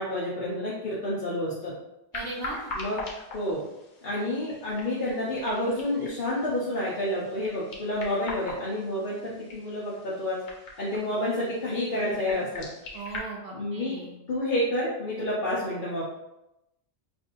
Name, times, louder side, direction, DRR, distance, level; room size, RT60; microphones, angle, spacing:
voice 1, 0.0-1.7 2.7-3.0 3.3-3.6 4.0-10.4 10.8-12.7 13.5-14.0 14.3-16.0, left 1 dB, 50° left, -8 dB, 1.0 m, -29 dB
sound 1, 2.1-13.2, left 2 dB, 75° left, 1.2 m, -42 dB
voice 2, 2.1-2.7 12.9-14.2, right 2 dB, 70° right, -3 dB, 0.9 m, -37 dB
5.9 x 2.6 x 2.6 m, 0.90 s
omnidirectional pair, 1.2 m